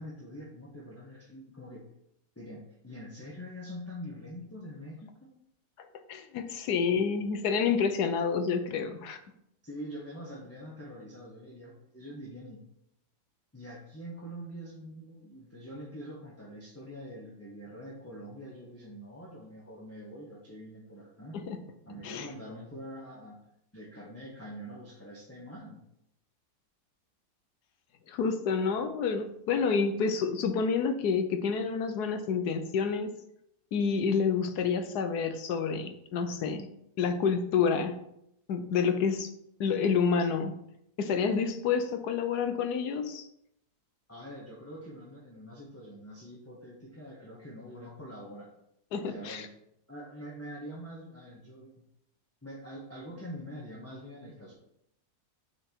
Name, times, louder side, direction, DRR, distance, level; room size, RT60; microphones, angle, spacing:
voice 1, 0.0-1.9 2.3-5.3 9.6-12.6 13.5-21.4 21.9-23.4 23.7-25.8 44.1-48.5 48.9-49.5 49.9-51.7 52.4-54.5, equal, 10° left, -4 dB, 1.3 m, -44 dB
voice 2, 6.1-9.2 21.3-21.6 22.0-22.3 28.1-33.1 33.7-36.7 37.0-38.0 38.5-39.3 39.6-40.6 41.0-43.3 48.9-49.5, left 6 dB, 85° left, 8 dB, 1.4 m, -28 dB
10.0 x 4.5 x 4.5 m, 0.77 s
omnidirectional pair, 1.6 m